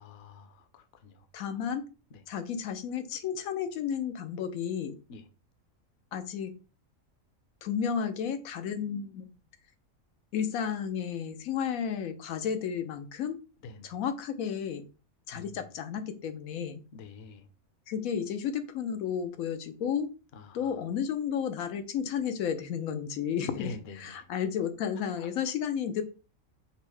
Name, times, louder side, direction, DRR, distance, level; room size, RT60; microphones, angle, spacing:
voice 1, 0.0-1.3 2.1-2.2 5.1-5.2 13.6-13.9 15.3-15.6 16.9-17.5 20.3-20.8 23.5-24.3 25.2-25.3, left 3 dB, 55° left, 8 dB, 0.8 m, -46 dB
voice 2, 1.3-1.8 2.3-5.0 6.1-6.5 7.6-9.3 10.3-13.4 13.8-14.8 15.3-16.8 17.9-20.1 20.5-26.0, left 8 dB, 85° left, 9 dB, 1.1 m, -32 dB
5.4 x 2.1 x 4.6 m, 0.33 s
omnidirectional pair, 1.4 m